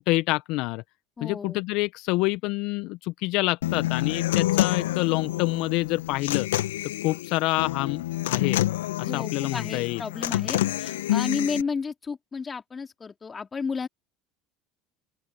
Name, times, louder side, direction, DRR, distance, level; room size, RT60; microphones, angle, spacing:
voice 1, 0.1-0.8 1.2-6.5 7.0-8.6 9.0-10.0, left 21 dB, 65° left, 1.0 m, -27 dB
voice 2, 1.2-1.6 9.0-13.9, left 5 dB, 25° left, 4.1 m, -32 dB
Human voice / Acoustic guitar, 3.6-11.6, left 15 dB, 80° left, 1.6 m, -27 dB
open air
hypercardioid pair, 75°, 0 cm